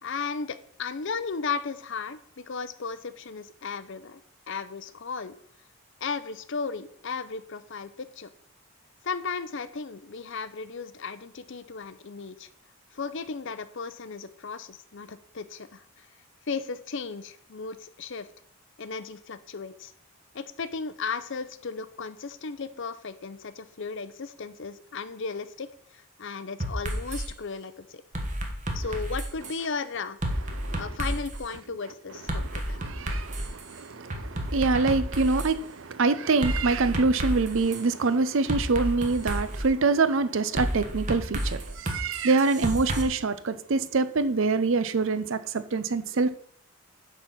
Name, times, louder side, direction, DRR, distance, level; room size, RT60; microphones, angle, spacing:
voice 1, 0.0-4.2 4.5-5.4 6.0-8.3 9.0-12.5 12.9-16.1 16.5-18.3 18.8-19.9 20.3-28.0 28.7-30.2 30.8-32.8, left 5 dB, 55° left, 0.6 m, -35 dB
sound 1, 26.6-27.3 28.1-29.6 30.2-31.4 32.3-33.6 34.1-35.5 36.4-37.8 38.5-39.7 40.6-43.0, equal, 35° right, 1.3 m, -31 dB
voice 2, 32.4-46.3, right 3 dB, 60° right, 0.6 m, -25 dB
9.8 x 4.2 x 7.2 m
head